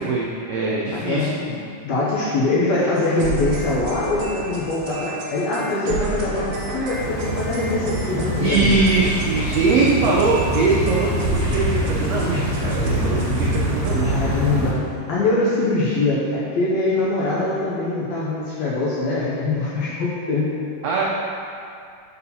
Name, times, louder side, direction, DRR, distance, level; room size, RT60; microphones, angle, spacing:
voice 1, 0.0-1.3 8.4-14.1 20.8-21.0, right 3 dB, 90° right, -5 dB, 1.4 m, -21 dB
voice 2, 0.9-1.6 1.8-8.8 14.0-14.8 15.1-20.5, left 2 dB, 75° left, -7 dB, 1.7 m, -23 dB
sound 1, 3.0-14.3, right 3 dB, 70° right, 1.7 m, -31 dB
sound 2, 6.9-14.7, equal, 40° right, 1.5 m, -24 dB
5.7 x 4.1 x 5.5 m, 2.4 s
omnidirectional pair, 3.8 m